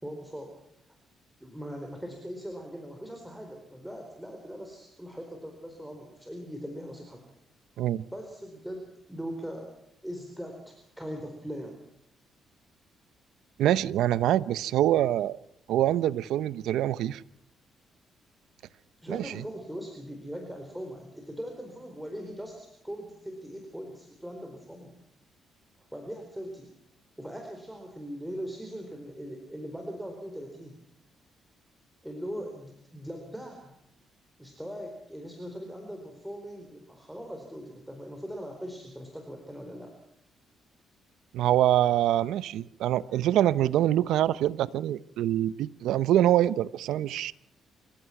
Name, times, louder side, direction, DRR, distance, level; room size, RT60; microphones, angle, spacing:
voice 1, 0.0-0.6 1.4-7.2 8.1-9.7 10.0-11.8 19.0-25.0 25.8-26.7 27.2-30.8 32.0-33.7 34.4-39.9, equal, 5° right, 4.4 m, -40 dB
voice 2, 13.6-15.4 15.7-17.2 19.1-19.4 41.3-47.3, right 12 dB, 85° right, 0.7 m, -25 dB
28.0 x 16.5 x 5.9 m
cardioid pair, 90°, 0 cm